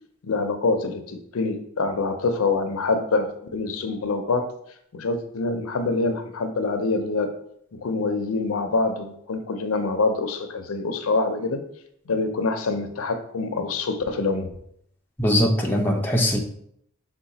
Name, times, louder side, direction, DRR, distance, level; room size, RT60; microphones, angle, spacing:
voice 1, 0.2-4.5 4.9-7.3 7.7-11.6 12.1-14.5, left 3 dB, 75° left, 8 dB, 0.5 m, -25 dB
voice 2, 15.2-16.4, equal, 10° left, 1 dB, 0.4 m, -21 dB
5.6 x 2.2 x 4.0 m, 0.70 s
head